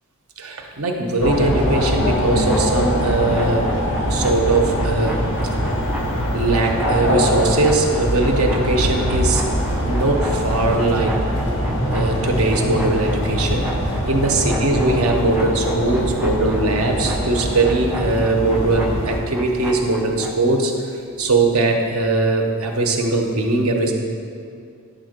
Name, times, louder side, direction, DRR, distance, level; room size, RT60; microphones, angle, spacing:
voice 1, 0.4-3.7 4.1-5.2 6.3-9.4 9.8-11.2 11.9-13.7 14.0-20.7 21.2-23.9, right 2 dB, 80° right, 2 dB, 1.0 m, -20 dB
sound 1, 1.2-19.2, equal, 60° left, 1.4 m, -22 dB
sound 2, 2.4-20.4, equal, 5° right, 0.6 m, -34 dB
9.8 x 3.9 x 6.6 m, 2.3 s
head